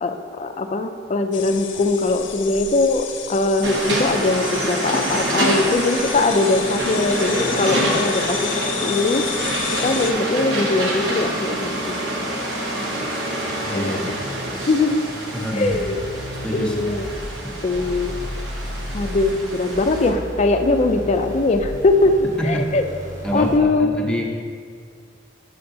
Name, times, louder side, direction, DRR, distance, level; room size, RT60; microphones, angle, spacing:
voice 1, 0.0-8.5 8.8-9.3 9.8-12.0 13.7-14.0 14.7-15.0 15.5-16.0 16.5-17.1 17.6-18.1 18.9-22.8 23.3-23.9, left 2 dB, 35° left, 7 dB, 0.4 m, -21 dB
sound 1, 1.3-10.1, left 8 dB, 90° left, 0.5 m, -32 dB
sound 2, 3.6-20.1, right 1 dB, 75° right, 1.0 m, -26 dB
voice 2, 13.6-14.1 15.3-15.9 16.4-16.9 17.4-17.5 22.4-22.7 23.2-24.2, equal, 5° left, -2 dB, 0.7 m, -26 dB
sound 3, 15.7-23.7, equal, 45° right, 1.2 m, -34 dB
6.9 x 6.7 x 2.6 m, 2.1 s
head